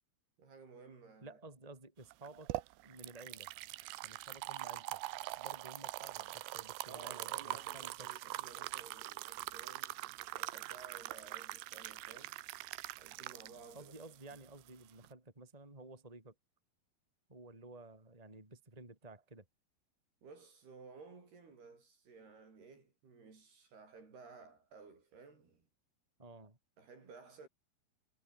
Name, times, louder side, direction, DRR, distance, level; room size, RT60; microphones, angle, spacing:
voice 1, 0.4-1.4 6.9-12.4 13.0-13.9 20.2-25.7 26.8-27.5, right 4 dB, 65° right, 8.5 m, -56 dB
voice 2, 1.2-2.5 2.8-3.5 4.0-5.0 5.4-8.1 13.7-16.3 17.3-19.5 26.2-26.6, right 2 dB, 10° right, 3.8 m, -53 dB
sound 1, 2.1-15.1, right 19 dB, 90° right, 2.9 m, -43 dB
omnidirectional pair, 5.0 m